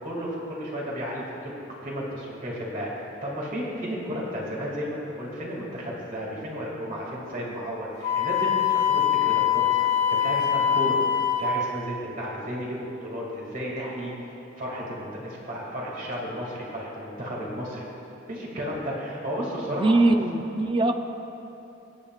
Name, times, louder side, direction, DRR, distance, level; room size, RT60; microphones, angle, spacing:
voice 1, 0.0-14.1 14.5-17.8 18.3-19.9, equal, 40° right, -4 dB, 2.3 m, -33 dB
Wind instrument woodwind instrument, 8.0-11.6, left 9 dB, 50° left, 2.1 m, -23 dB
voice 2, 19.7-20.9, right 2 dB, 25° right, 6 dB, 0.5 m, -21 dB
25.0 x 8.5 x 2.4 m, 2.9 s
head